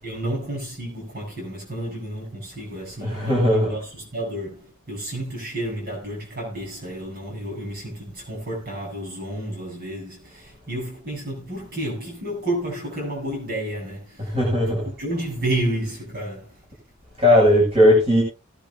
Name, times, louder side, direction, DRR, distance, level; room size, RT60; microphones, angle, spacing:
voice 1, 0.0-14.3 15.0-16.6, right 1 dB, 50° right, 8.0 m, -31 dB
voice 2, 3.0-3.7 14.2-14.8 17.2-18.2, left 1 dB, 30° right, 6.3 m, -17 dB
19.0 x 10.5 x 2.6 m
head